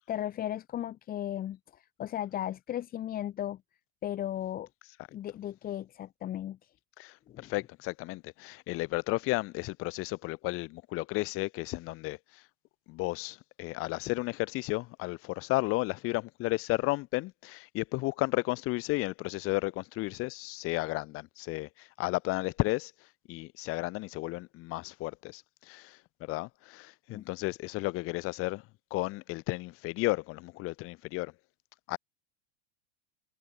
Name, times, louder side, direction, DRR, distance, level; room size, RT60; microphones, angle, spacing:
voice 1, 0.0-3.6 4.0-4.7 5.1-6.7 7.3-7.5 27.1-27.3, left 12 dB, 30° left, 0.9 m, -36 dB
voice 2, 7.4-12.4 12.9-22.9 23.3-28.6 28.9-31.3 31.9-32.0, left 21 dB, 45° left, 1.4 m, -33 dB
hypercardioid pair, 110°, 30 cm